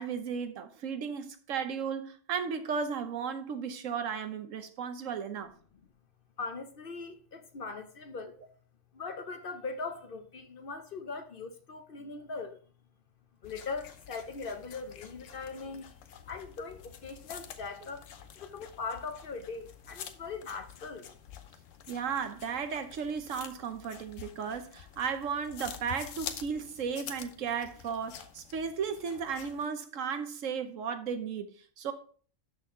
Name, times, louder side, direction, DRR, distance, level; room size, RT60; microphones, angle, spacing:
voice 1, 0.0-5.5 21.9-31.9, right 6 dB, 80° right, 1.2 m, -35 dB
voice 2, 6.4-8.3 9.0-12.5 13.4-15.9 16.3-18.0 18.5-21.0, left 4 dB, 50° left, 0.8 m, -40 dB
sound 1, 13.4-29.7, left 8 dB, 80° left, 1.1 m, -48 dB
12.0 x 4.1 x 3.6 m
omnidirectional pair, 1.3 m